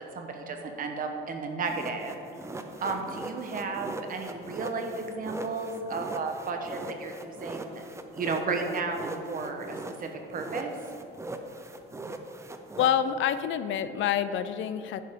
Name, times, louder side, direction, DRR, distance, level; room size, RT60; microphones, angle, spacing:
voice 1, 0.0-2.2 2.8-7.8 8.2-10.7, right 4 dB, 40° right, 4 dB, 1.1 m, -33 dB
sound 1, 1.6-10.1 10.3-12.9, right 2 dB, 15° right, 0.5 m, -40 dB
voice 2, 12.8-15.0, left 9 dB, 65° left, 12 dB, 0.5 m, -27 dB
10.5 x 10.0 x 3.7 m, 2.8 s
cardioid pair, 155°, 21 cm